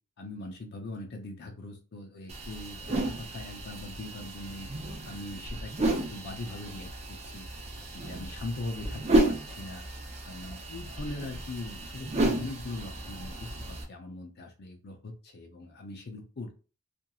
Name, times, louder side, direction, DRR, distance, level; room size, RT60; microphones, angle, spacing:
voice 1, 0.2-4.7 5.0-7.5 7.9-9.8 10.3-16.6, left 2 dB, 45° left, 4 dB, 0.5 m, -41 dB
sound 1, 2.3-13.8, right 1 dB, 30° right, 0.5 m, -32 dB
2.9 x 2.5 x 2.3 m, 0.34 s
head